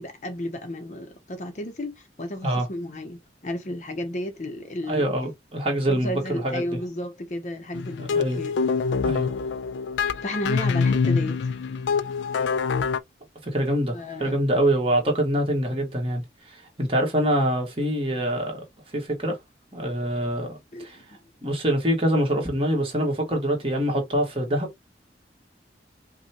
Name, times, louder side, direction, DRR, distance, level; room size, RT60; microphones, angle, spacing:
voice 1, 0.0-5.1 5.9-8.6 10.2-11.5 13.9-14.4 20.7-21.0, left 1 dB, 40° left, 0.6 m, -33 dB
voice 2, 4.9-6.8 8.1-8.4 9.0-9.5 13.4-18.6 18.9-19.4 19.7-21.0 21.4-24.7, right 1 dB, 30° right, 1.5 m, -25 dB
sound 1, 7.7-13.0, left 5 dB, 85° left, 0.4 m, -25 dB
5.1 x 2.2 x 2.8 m
head